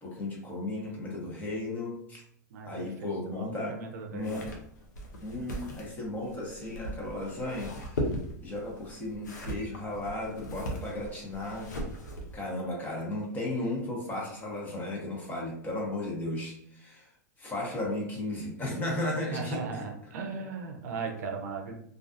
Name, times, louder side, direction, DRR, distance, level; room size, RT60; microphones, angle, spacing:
voice 1, 0.0-2.2 2.7-3.7 4.1-4.4 5.2-8.0 8.4-11.7 12.3-17.1 17.4-19.6, left 1 dB, 20° left, -2 dB, 0.8 m, -35 dB
voice 2, 2.5-4.4 19.3-21.7, right 4 dB, 70° right, 3 dB, 0.5 m, -37 dB
sound 1, 4.2-12.4, equal, 85° left, 0.6 m, -38 dB
2.4 x 2.3 x 2.5 m, 0.68 s
hypercardioid pair, 120°, 9 cm